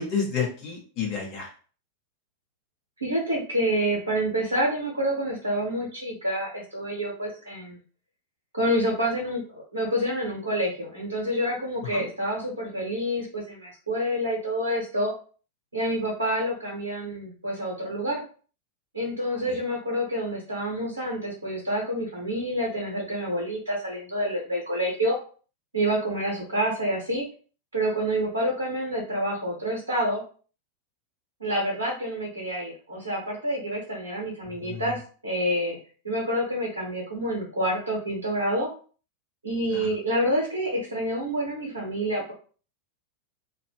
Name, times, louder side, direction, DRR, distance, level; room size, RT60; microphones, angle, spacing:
voice 1, 0.0-1.5 11.9-12.1 19.4-19.6 34.5-34.9 39.7-39.9, left 5 dB, 40° left, -1 dB, 1.0 m, -31 dB
voice 2, 3.0-7.8 8.5-15.1 15.7-18.2 18.9-25.2 25.7-27.3 27.7-30.2 31.4-35.8 36.0-38.7 39.4-42.3, equal, 80° right, -3 dB, 0.8 m, -28 dB
2.2 x 2.0 x 3.4 m, 0.40 s
figure-of-eight pair, 90°, 0 cm